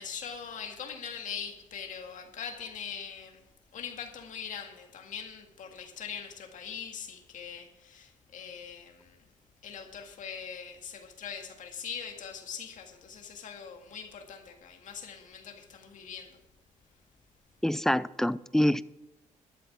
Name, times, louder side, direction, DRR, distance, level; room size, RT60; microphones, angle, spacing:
voice 1, 0.0-3.4 3.7-9.2 9.6-16.4, left 7 dB, 70° left, 1.9 m, -42 dB
voice 2, 17.6-18.8, left 1 dB, 5° left, 0.3 m, -26 dB
12.0 x 7.8 x 6.0 m
cardioid pair, 115°, 14 cm